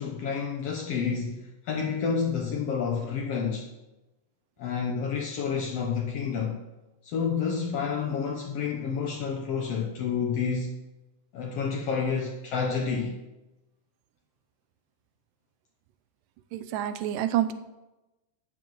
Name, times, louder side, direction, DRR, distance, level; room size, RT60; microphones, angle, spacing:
voice 1, 0.0-3.7 4.6-6.6 7.0-10.7 11.3-13.1, left 6 dB, 85° left, 1 dB, 1.4 m, -29 dB
voice 2, 16.5-17.5, right 12 dB, 80° right, 10 dB, 2.1 m, -27 dB
14.5 x 9.6 x 3.1 m, 1.0 s
omnidirectional pair, 3.9 m